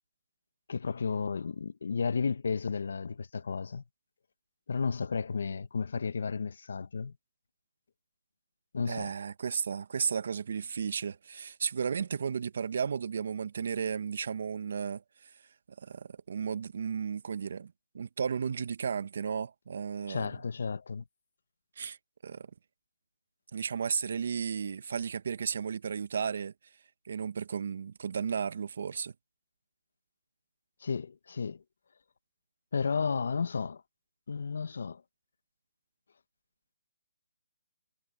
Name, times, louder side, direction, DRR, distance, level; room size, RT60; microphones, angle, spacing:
voice 1, 0.7-3.8 4.7-7.1 8.7-9.1 20.1-21.0 30.8-31.6 32.7-33.8 34.3-35.0, left 5 dB, 70° left, 1.2 m, -33 dB
voice 2, 8.9-15.0 15.8-20.3 21.8-22.0 22.2-22.5 23.5-26.5 27.0-29.1, right 6 dB, 60° right, 1.2 m, -34 dB
hypercardioid pair, 160°, 0 cm